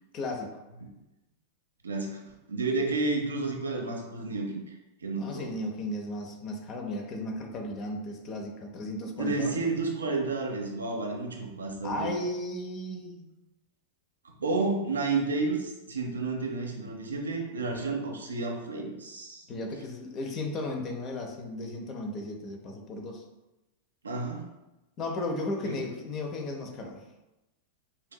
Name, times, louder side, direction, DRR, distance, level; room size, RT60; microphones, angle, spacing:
voice 1, 0.1-0.5 5.2-9.6 11.8-13.3 19.5-23.2 25.0-27.0, left 1 dB, 35° left, 3 dB, 0.7 m, -35 dB
voice 2, 1.8-2.2 2.5-4.6 5.0-5.5 9.2-12.1 14.4-19.5 24.0-24.4 25.6-25.8, right 3 dB, 80° right, 0 dB, 0.6 m, -31 dB
5.4 x 2.8 x 2.2 m, 1.0 s
figure-of-eight pair, 90°, 0 cm